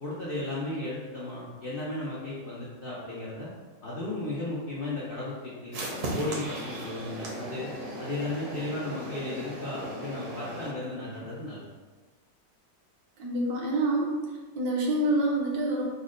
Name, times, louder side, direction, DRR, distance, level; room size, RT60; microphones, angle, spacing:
voice 1, 0.0-3.5 3.8-5.8 6.1-7.7 8.0-11.7, left 2 dB, 75° left, -8 dB, 0.5 m, -35 dB
sound 1, 5.7-10.7, right 1 dB, 60° right, 1.0 m, -37 dB
voice 2, 13.2-15.9, right 1 dB, 75° right, -2 dB, 1.4 m, -27 dB
4.1 x 2.1 x 3.7 m, 1.3 s
omnidirectional pair, 1.8 m